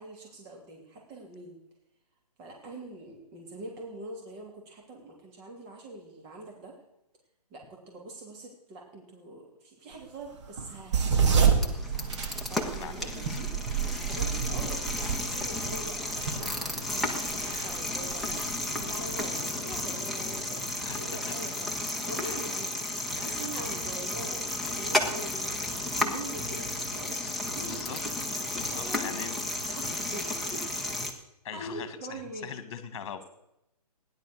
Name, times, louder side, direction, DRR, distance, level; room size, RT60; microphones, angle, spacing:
voice 1, 0.0-1.6 2.4-6.8 7.5-11.7 12.5-13.5 13.8-16.5 16.9-18.4 18.8-22.7 23.1-27.2 27.4-28.1 28.7-29.2 29.7-30.9 31.5-32.6, right 2 dB, 25° right, -1 dB, 3.0 m, -44 dB
sound 1, 10.4-19.3, right 6 dB, 45° right, 2.1 m, -29 dB
sound 2, 11.3-31.1, left 1 dB, ahead, 1.1 m, -33 dB
voice 2, 12.8-13.4 19.0-19.1 20.8-21.3 22.2-22.4 23.2-23.6 27.1-28.0 28.4-29.5 31.4-32.2 32.4-33.2, left 8 dB, 45° left, 11 dB, 2.0 m, -42 dB
15.5 x 10.5 x 6.4 m, 0.83 s
hypercardioid pair, 140°, 20 cm